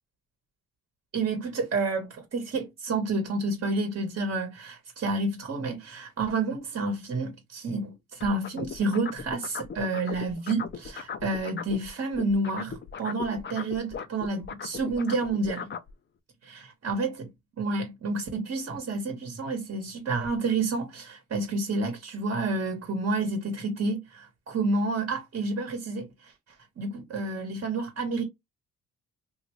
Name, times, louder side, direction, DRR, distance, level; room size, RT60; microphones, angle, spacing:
voice 1, 1.1-15.7 16.4-17.3 17.6-26.3 26.8-28.2, right 3 dB, 45° right, 1.2 m, -29 dB
sound 1, 8.2-11.9 12.1-15.9, left 7 dB, 40° left, 0.6 m, -37 dB
3.1 x 2.7 x 3.0 m
cardioid pair, 90°, 30 cm